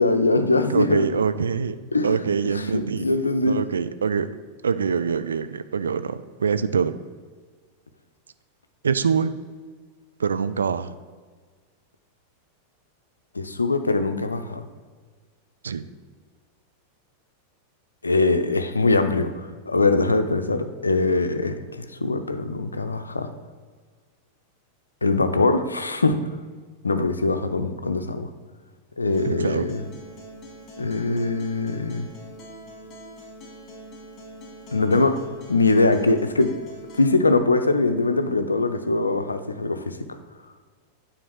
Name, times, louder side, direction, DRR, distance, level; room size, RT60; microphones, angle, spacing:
voice 1, 0.0-1.2 1.9-3.6 13.4-14.6 18.0-19.3 19.7-23.3 25.0-26.2 26.8-28.3 29.0-29.8 30.8-32.1 34.7-35.2 35.5-36.5 37.0-40.0, left 3 dB, 80° left, 9 dB, 0.5 m, -22 dB
voice 2, 0.7-1.8 2.0-3.1 3.4-4.3 4.6-6.9 8.8-9.3 10.2-10.9 15.6-15.8 29.2-29.7, right 6 dB, 70° right, 12 dB, 0.4 m, -24 dB
Acoustic guitar, 29.1-37.1, right 1 dB, 30° left, 2.2 m, -43 dB
9.1 x 3.9 x 6.2 m, 1.5 s
figure-of-eight pair, 90°, 0 cm